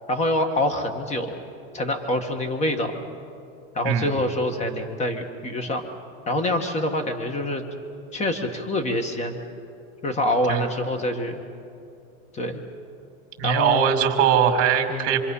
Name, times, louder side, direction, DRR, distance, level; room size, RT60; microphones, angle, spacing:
voice 1, 0.1-1.3 1.7-3.0 3.7-5.9 6.3-7.6 8.1-9.4 10.0-11.4 12.3-12.6 13.4-14.0 14.9-15.2, left 1 dB, 20° left, 7 dB, 1.8 m, -26 dB
voice 2, 13.4-15.2, right 8 dB, 40° right, 5 dB, 2.7 m, -21 dB
26.5 x 26.5 x 5.7 m, 2.6 s
supercardioid pair, 150°, 35 cm